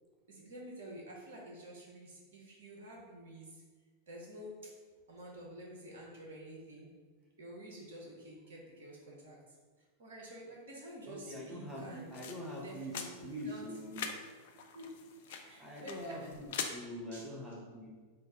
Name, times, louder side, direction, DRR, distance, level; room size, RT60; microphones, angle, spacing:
voice 1, 0.3-3.6 4.1-4.7 5.1-6.9 7.4-9.4 10.0-12.1 12.6-13.6 14.7-14.8 15.3-16.1 17.1-17.3, right 1 dB, 60° right, -3 dB, 0.8 m, -49 dB
voice 2, 11.1-14.0 15.4-17.9, equal, 5° right, -4 dB, 0.9 m, -44 dB
sound 1, 11.7-16.7, left 7 dB, 55° left, 0.3 m, -44 dB
3.2 x 2.4 x 4.1 m, 1.5 s
figure-of-eight pair, 90°, 0 cm